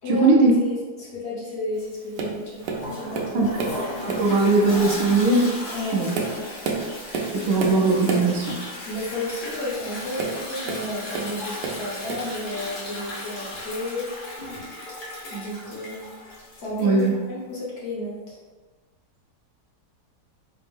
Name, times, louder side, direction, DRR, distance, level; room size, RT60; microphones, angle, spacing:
voice 1, 0.1-0.5 3.3-3.5 4.0-5.5 5.9-6.1 7.3-8.6 16.8-17.1, right 3 dB, 60° right, -1 dB, 0.8 m, -19 dB
voice 2, 0.6-3.5 5.7-6.4 8.8-14.1 15.3-16.1 16.6-18.4, left 1 dB, 45° left, -6 dB, 1.1 m, -32 dB
Tap, 2.2-2.4 2.6-3.8 4.1-4.4 5.1-5.2 5.8-8.4 10.1-11.3 11.6-12.3 13.1-13.2, right 4 dB, 75° right, 1.2 m, -29 dB
Toilet flush, 2.6-17.2, left 1 dB, 80° left, 0.4 m, -36 dB
4.3 x 2.0 x 3.3 m, 1.3 s
omnidirectional pair, 1.9 m